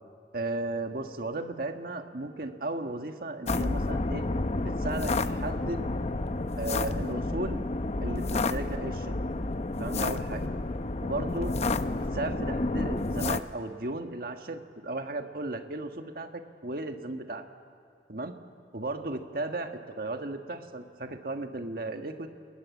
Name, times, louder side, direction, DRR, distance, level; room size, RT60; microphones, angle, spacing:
voice 1, 0.3-4.3 4.6-5.8 6.6-7.6 8.0-9.2 9.8-10.4 11.0-11.5 11.9-17.4 18.1-18.3 18.7-22.3, right 2 dB, 55° right, 5 dB, 1.5 m, -35 dB
sound 1, 3.5-13.4, left 2 dB, 40° left, 0.7 m, -30 dB
29.5 x 21.5 x 9.4 m, 2.3 s
head